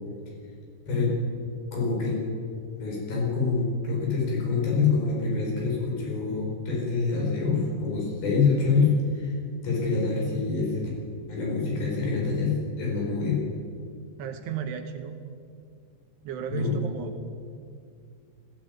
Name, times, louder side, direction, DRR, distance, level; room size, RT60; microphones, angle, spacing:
voice 1, 1.7-2.2 2.7-9.3 9.6-10.9 11.3-13.4 16.5-16.7, left 4 dB, 55° left, -3 dB, 7.1 m, -26 dB
voice 2, 14.2-15.2 16.2-17.2, right 7 dB, 70° right, 7 dB, 3.0 m, -34 dB
19.5 x 16.0 x 9.4 m, 2.3 s
omnidirectional pair, 5.2 m